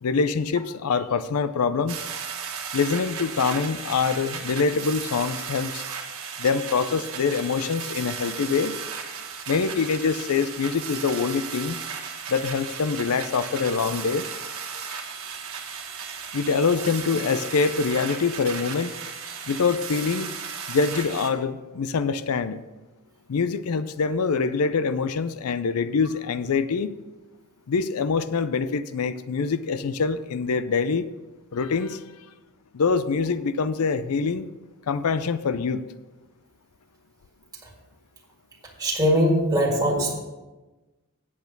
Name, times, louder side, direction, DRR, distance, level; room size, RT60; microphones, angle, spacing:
voice 1, 0.0-2.0 2.7-5.8 6.4-8.8 9.5-11.8 12.3-14.3 16.3-18.9 19.5-20.3 20.7-22.6 23.3-27.0 27.7-31.1 31.5-32.0 32.7-34.4 34.9-35.9, left 5 dB, 85° left, 13 dB, 0.5 m, -25 dB
sound 1, 1.9-21.3, right 6 dB, 75° right, 1.5 m, -35 dB
voice 2, 38.8-40.2, equal, 15° right, -3 dB, 1.9 m, -21 dB
8.5 x 8.1 x 5.2 m, 1.2 s
head